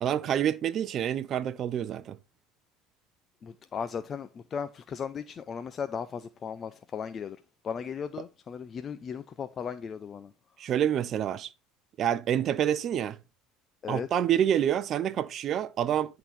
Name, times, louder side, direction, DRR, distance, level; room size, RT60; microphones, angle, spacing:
voice 1, 0.0-2.2 10.6-11.5 12.0-13.2 13.9-16.2, right 10 dB, 45° right, 0.6 m, -27 dB
voice 2, 3.4-10.3 13.8-14.1, left 7 dB, 35° left, 0.5 m, -36 dB
10.0 x 3.9 x 4.2 m
supercardioid pair, 120°, 0 cm